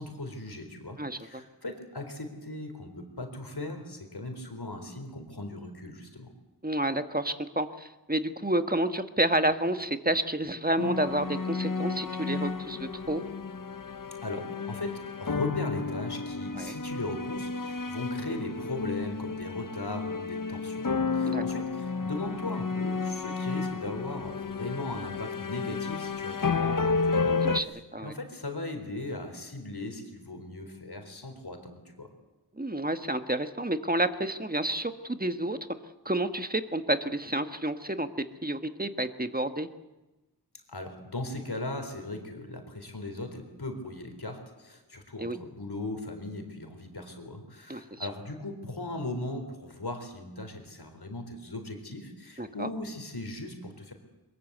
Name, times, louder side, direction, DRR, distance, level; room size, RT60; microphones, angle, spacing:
voice 1, 0.0-6.3 14.2-20.8 21.1-27.3 28.0-32.1 40.7-53.9, left 2 dB, 70° left, 6 dB, 4.1 m, -38 dB
voice 2, 1.0-1.4 6.6-13.2 16.5-16.8 21.2-21.4 27.4-27.7 27.9-28.1 32.6-35.6 36.0-38.1 38.4-39.7 45.2-45.4 47.7-48.1 52.4-52.7, right 1 dB, 20° right, 9 dB, 1.5 m, -30 dB
sound 1, 10.8-27.6, left 4 dB, 55° left, 1.0 m, -32 dB
22.5 x 22.0 x 8.1 m, 1.0 s
wide cardioid pair, 40°, 40 cm